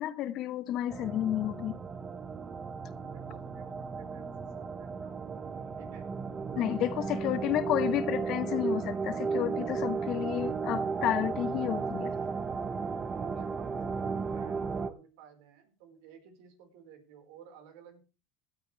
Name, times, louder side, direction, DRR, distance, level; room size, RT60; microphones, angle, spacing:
voice 1, 0.0-1.8 6.6-12.1, left 12 dB, 50° left, 1.2 m, -31 dB
sound 1, 0.9-14.9, right 5 dB, 25° right, 1.0 m, -34 dB
voice 2, 2.9-6.1 6.5-7.6 11.6-12.3 13.3-18.0, right 7 dB, 70° right, 4.8 m, -55 dB
16.5 x 12.5 x 3.4 m
supercardioid pair, 120°, 0 cm